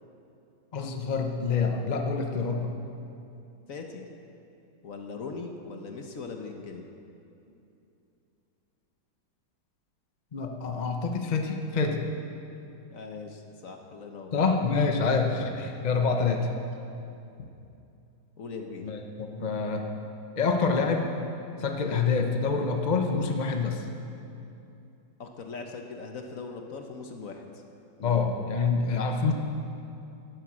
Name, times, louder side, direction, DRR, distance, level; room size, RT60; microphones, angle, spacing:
voice 1, 0.7-2.7 10.3-12.0 14.3-16.5 18.8-19.9 20.4-21.1 21.6-23.8 28.0-29.3, left 4 dB, 35° left, 3 dB, 0.7 m, -26 dB
voice 2, 3.7-4.1 4.8-6.9 12.9-14.3 17.4-17.5 18.4-18.9 25.2-27.4 28.0-28.2, left 4 dB, 55° left, 4 dB, 1.2 m, -40 dB
11.0 x 11.0 x 7.4 m, 2.7 s
omnidirectional pair, 2.0 m